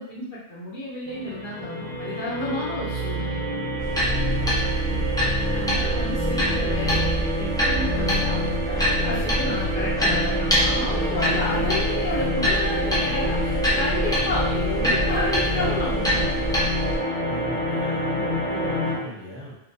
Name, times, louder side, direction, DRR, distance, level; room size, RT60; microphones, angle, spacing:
voice 1, 0.0-3.4 4.9-16.6, left 2 dB, 55° left, -7 dB, 0.8 m, -31 dB
sound 1, 1.1-19.0, equal, 10° right, 1.0 m, -27 dB
sound 2, 3.8-17.0, equal, 5° left, 0.4 m, -26 dB
voice 2, 4.0-4.8 17.2-19.5, left 1 dB, 40° right, -8 dB, 0.8 m, -37 dB
Bass guitar, 10.0-16.2, right 9 dB, 90° left, 0.9 m, -43 dB
2.7 x 2.1 x 2.5 m, 0.83 s
omnidirectional pair, 1.1 m